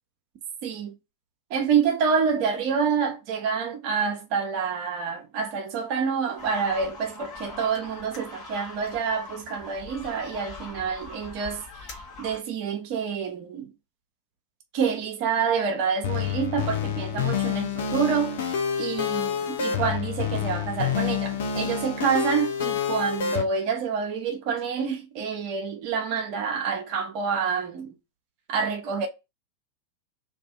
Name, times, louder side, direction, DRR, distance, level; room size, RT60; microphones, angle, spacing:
voice 1, 0.6-0.9 1.5-13.7 14.7-18.5 18.8-27.9 28.5-29.1, right 6 dB, 45° right, 0.6 m, -27 dB
sound 1, 6.4-12.4, left 3 dB, 35° left, 1.1 m, -42 dB
sound 2, 16.0-23.4, left 7 dB, 55° left, 0.5 m, -28 dB
2.6 x 2.4 x 2.3 m
figure-of-eight pair, 90°, 0 cm